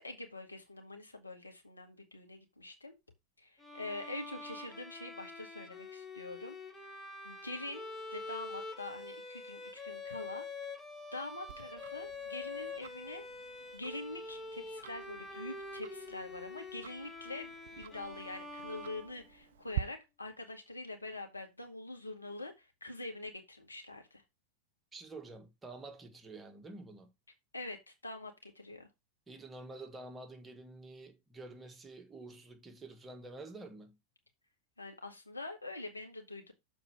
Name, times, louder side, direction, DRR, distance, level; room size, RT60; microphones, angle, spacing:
voice 1, 0.0-2.9 3.4-6.9 7.2-7.8 8.1-10.7 11.1-13.3 13.7-24.2 27.5-28.9 34.8-36.5, left 2 dB, 80° left, 1.8 m, -45 dB
Bowed string instrument, 3.6-19.6, left 3 dB, 10° left, 1.5 m, -46 dB
Tick-tock, 11.5-19.8, right 13 dB, 60° right, 0.4 m, -47 dB
voice 2, 24.9-27.1 29.3-34.0, right 2 dB, 15° right, 1.7 m, -49 dB
6.9 x 4.4 x 6.3 m
figure-of-eight pair, 90°, 0 cm